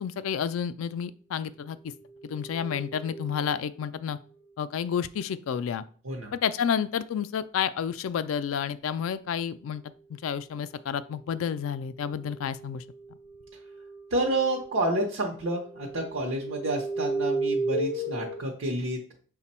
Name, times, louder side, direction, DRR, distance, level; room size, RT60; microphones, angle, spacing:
voice 1, 0.0-1.9 2.2-4.2 4.6-5.8 6.3-9.8 10.2-12.8, left 7 dB, 85° left, 14 dB, 0.3 m, -30 dB
sound 1, 2.1-3.5 11.3-14.9 15.2-18.4, right 2 dB, 40° left, 0.6 m, -35 dB
voice 2, 14.1-19.0, right 1 dB, 85° right, 0 dB, 0.7 m, -29 dB
5.9 x 2.2 x 4.2 m, 0.43 s
head